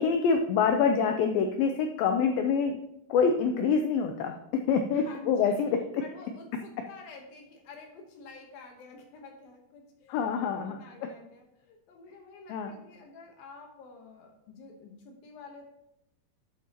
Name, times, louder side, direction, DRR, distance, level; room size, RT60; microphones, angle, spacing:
voice 1, 0.0-2.8 3.1-6.0 10.1-11.1 12.5-12.8, left 6 dB, 85° left, 5 dB, 2.0 m, -26 dB
voice 2, 4.9-15.6, left 3 dB, 70° left, 2 dB, 2.7 m, -49 dB
11.0 x 8.4 x 2.9 m, 0.82 s
omnidirectional pair, 4.8 m